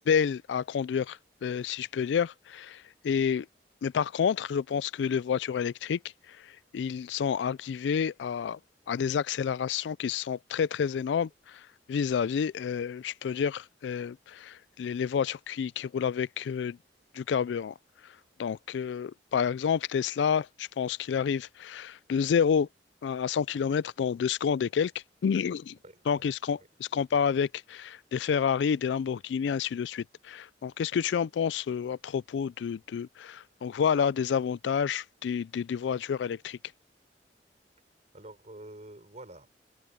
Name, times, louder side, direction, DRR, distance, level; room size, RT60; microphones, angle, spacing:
voice 1, 0.1-3.5 3.8-6.0 6.3-6.4 6.7-8.6 8.9-11.6 11.9-16.8 17.1-17.7 18.4-22.7 23.0-24.9 25.2-25.8 26.1-36.6, left 7 dB, 85° left, 0.3 m, -29 dB
voice 2, 25.7-26.3 26.9-27.2 38.1-39.5, right 1 dB, 40° right, 5.5 m, -48 dB
open air
head